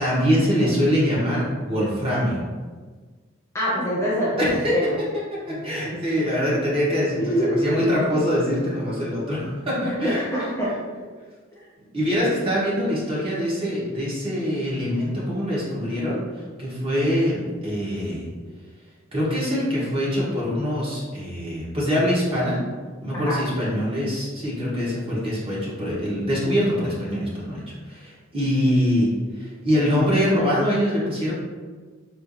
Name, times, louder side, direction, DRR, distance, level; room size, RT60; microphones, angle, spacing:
voice 1, 0.0-2.4 4.4-4.8 5.1-10.3 11.9-16.2 16.6-18.3 19.1-22.6 23.0-31.3, equal, 30° right, -7 dB, 0.9 m, -24 dB
voice 2, 3.5-4.9 5.7-6.0 7.2-7.5 7.8-7.9 9.8-10.7 23.1-23.4, equal, 15° left, -8 dB, 0.8 m, -26 dB
4.3 x 2.4 x 2.5 m, 1.4 s
head